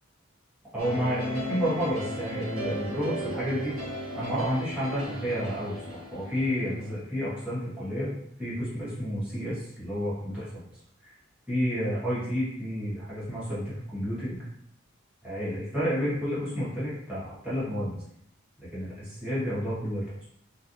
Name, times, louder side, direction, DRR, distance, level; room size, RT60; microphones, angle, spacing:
voice 1, 0.7-3.8 4.1-8.1 8.4-10.6 11.0-11.1 11.5-14.4 15.2-18.0 18.7-20.2, equal, 5° right, -11 dB, 1.4 m, -30 dB
sound 1, 0.8-7.0, equal, 80° right, 1.4 m, -36 dB
3.2 x 2.3 x 2.7 m, 0.71 s
head